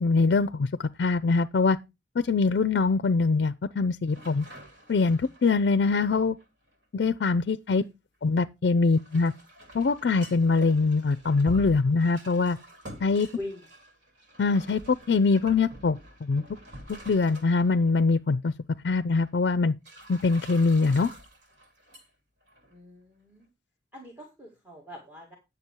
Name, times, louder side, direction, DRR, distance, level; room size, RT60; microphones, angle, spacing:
voice 1, 0.0-1.8 2.2-4.5 4.9-6.4 6.9-7.8 8.2-9.3 9.7-12.6 13.0-13.3 14.4-16.4 16.9-18.5 18.8-19.7 20.1-21.1, left 4 dB, 60° left, 0.4 m, -23 dB
sound 1, 4.1-6.7 8.8-17.9 18.2-18.3 19.1-19.3 19.8-22.1 22.4-22.8, equal, 90° right, 2.8 m, -46 dB
voice 2, 22.7-23.5 23.9-25.4, left 1 dB, 10° right, 1.9 m, -42 dB
9.7 x 6.9 x 4.5 m
head